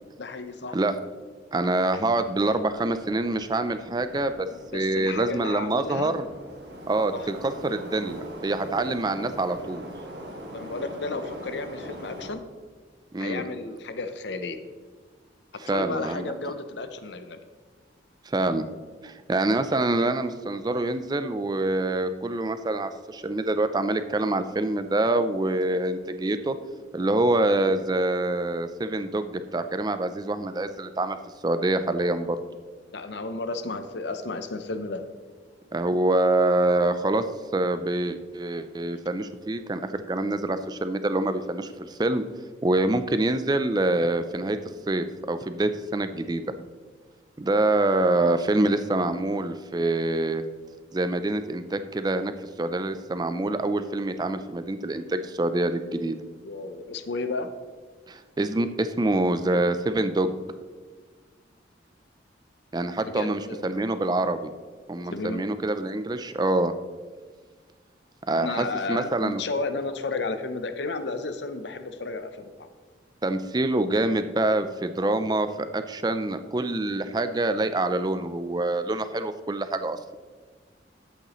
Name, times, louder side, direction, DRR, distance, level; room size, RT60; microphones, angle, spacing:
voice 1, 0.2-0.8 4.7-6.1 7.1-7.3 10.5-12.4 13.2-14.6 15.5-17.4 32.9-35.0 56.4-57.5 63.1-63.7 65.1-65.4 68.4-72.7, left 3 dB, 70° left, 9 dB, 0.7 m, -33 dB
voice 2, 1.5-4.5 4.7-6.3 6.9-9.8 13.1-13.4 15.6-16.3 18.3-18.6 19.0-26.6 26.9-31.2 31.4-32.4 35.7-37.2 37.5-42.2 42.6-44.6 44.9-46.4 47.4-50.4 50.9-52.3 52.6-56.2 58.1-60.4 62.7-64.5 64.9-66.7 68.3-69.4 73.2-80.0, right 2 dB, 20° right, 10 dB, 0.4 m, -26 dB
Subway metro underground, 2.0-12.3, right 1 dB, 65° right, 1.6 m, -42 dB
12.5 x 8.1 x 3.1 m, 1.5 s
head